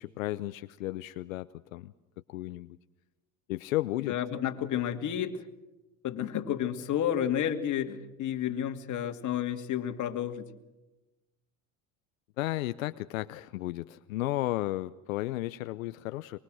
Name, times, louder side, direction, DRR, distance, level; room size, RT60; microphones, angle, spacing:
voice 1, 0.0-1.9 2.3-2.8 3.5-4.1 12.4-16.4, left 17 dB, 85° left, 13 dB, 0.7 m, -33 dB
voice 2, 4.1-5.4 6.0-10.5, left 10 dB, 50° left, 7 dB, 2.6 m, -31 dB
24.5 x 22.5 x 6.4 m, 1.0 s
supercardioid pair, 95°, 39 cm